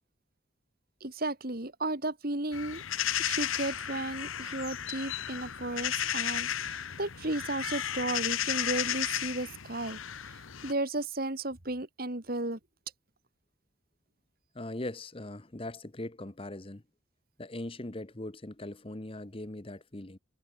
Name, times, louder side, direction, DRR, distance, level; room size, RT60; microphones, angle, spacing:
voice 1, 1.0-2.8 3.2-10.0 10.6-12.6, right 2 dB, 45° right, 2.4 m, -34 dB
sound 1, 2.5-10.7, left 10 dB, 85° left, 1.1 m, -34 dB
voice 2, 14.5-16.8 17.4-20.2, left 1 dB, 25° left, 1.1 m, -40 dB
head